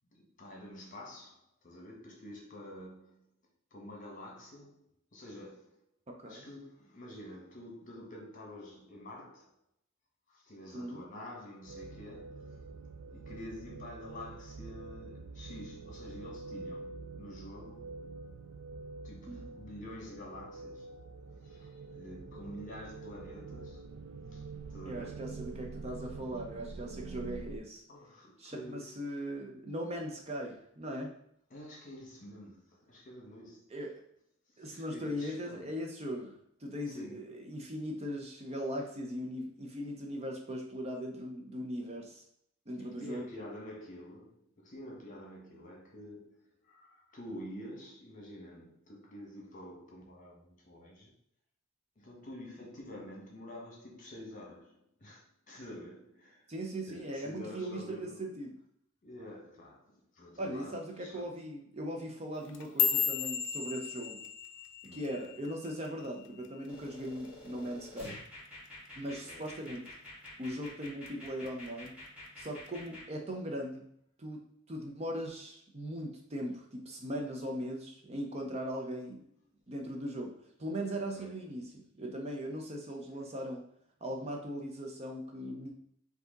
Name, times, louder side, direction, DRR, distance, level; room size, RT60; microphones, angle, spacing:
voice 1, 0.1-3.3 3.7-5.8 6.2-9.6 10.3-12.6 13.1-18.1 18.8-21.0 21.4-24.0 24.3-25.3 27.9-29.1 31.5-33.8 34.5-35.7 36.8-37.4 42.8-51.1 51.9-56.5 56.9-58.2 59.0-61.3 64.8-65.0 69.0-69.4 72.9-73.0 81.1-81.4, left 1 dB, 35° left, 1.3 m, -48 dB
voice 2, 6.1-6.4 10.7-11.0 19.3-19.5 24.9-27.8 28.4-31.1 33.7-33.9 34.6-42.2 42.7-43.2 56.5-58.5 60.4-64.3 64.9-68.2 69.0-69.8 70.4-71.9 72.4-73.9 74.2-79.2 79.7-80.3 80.6-83.6 84.0-85.7, equal, 30° right, 0.6 m, -39 dB
sound 1, 11.7-27.6, right 4 dB, 80° right, 0.4 m, -46 dB
sound 2, 62.4-66.8 67.1-67.5 67.9-68.3 68.7-68.9 69.5-69.9 70.3-71.1 71.5-71.9 72.7-72.8, left 7 dB, 55° left, 0.5 m, -34 dB
sound 3, 66.7-73.1, left 1 dB, 5° right, 1.5 m, -49 dB
4.7 x 2.8 x 3.8 m
head